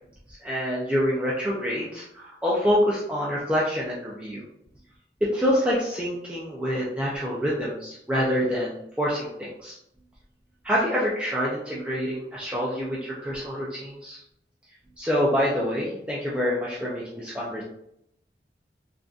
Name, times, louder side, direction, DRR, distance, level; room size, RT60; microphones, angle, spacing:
voice 1, 0.3-4.4 5.2-9.8 10.6-14.2 15.0-17.6, equal, 5° right, -6 dB, 0.4 m, -26 dB
3.6 x 2.5 x 2.4 m, 0.77 s
head